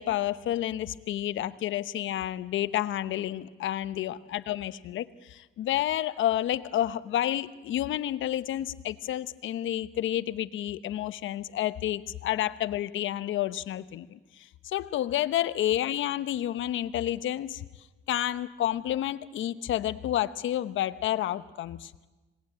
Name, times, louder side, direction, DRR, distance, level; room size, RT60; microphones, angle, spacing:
voice 1, 0.0-17.6 18.1-22.1, left 12 dB, 80° left, 14 dB, 1.0 m, -30 dB
27.0 x 19.5 x 8.9 m, 1.2 s
cardioid pair, 90°, 20 cm